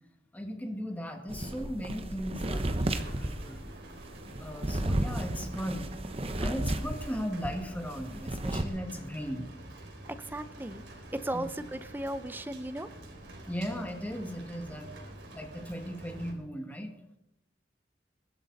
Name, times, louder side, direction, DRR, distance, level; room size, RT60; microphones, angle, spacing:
voice 1, 0.3-2.6 3.1-3.6 4.4-5.9 6.3-9.5 11.3-11.5 13.5-14.9 15.3-16.9, equal, 10° left, 3 dB, 1.9 m, -37 dB
sound 1, 1.3-7.6 7.9-8.6, right 1 dB, 30° right, 1.0 m, -33 dB
Rain, 2.4-16.3, right 1 dB, 80° right, 3.5 m, -47 dB
voice 2, 10.2-10.8 11.1-12.9, right 1 dB, 10° right, 11 dB, 0.7 m, -36 dB
22.0 x 12.0 x 4.1 m, 0.87 s
head